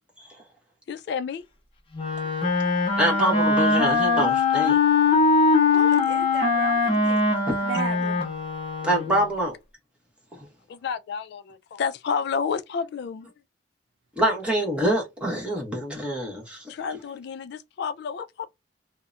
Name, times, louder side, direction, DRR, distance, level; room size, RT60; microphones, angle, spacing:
voice 1, 0.9-1.4 2.4-2.8 5.7-6.0 6.5-6.6 10.7-13.3 16.7-18.5, left 6 dB, 60° left, 0.3 m, -31 dB
Wind instrument woodwind instrument, 1.9-9.3, left 4 dB, 30° left, 0.7 m, -22 dB
voice 2, 3.0-4.8 8.8-9.6 14.2-16.6, equal, 5° right, 1.0 m, -25 dB
voice 3, 5.7-8.3, right 6 dB, 70° right, 0.5 m, -34 dB
2.8 x 2.0 x 2.4 m
head